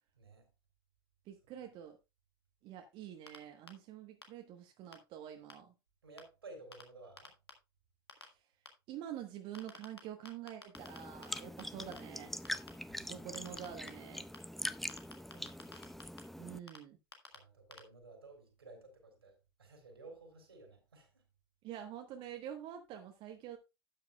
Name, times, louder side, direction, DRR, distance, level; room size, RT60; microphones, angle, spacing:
voice 1, 0.2-0.5 6.0-7.3 12.9-13.3 15.3-15.6 17.3-21.2, right 3 dB, 75° right, 3.6 m, -55 dB
voice 2, 1.2-2.0 2.6-5.7 8.2-8.4 8.9-12.3 13.0-14.2 16.4-17.0 21.6-23.6, right 10 dB, 45° right, 1.2 m, -47 dB
sound 1, 3.3-3.4 3.7-3.8 4.2-4.3 4.9-5.0 5.5-5.6 6.2-6.3 6.7-6.8 7.2-7.5 8.1-8.2 8.7-8.8 9.5-10.0 10.2-11.0 11.2-12.0 12.4-12.7 13.3-13.9 14.3-14.4 14.7-16.2 16.7-16.8 17.1-17.4 17.7-17.8, left 3 dB, 80° left, 1.7 m, -49 dB
sound 2, 10.7-16.6, equal, ahead, 0.5 m, -43 dB
12.0 x 8.9 x 2.3 m
figure-of-eight pair, 75°, 13 cm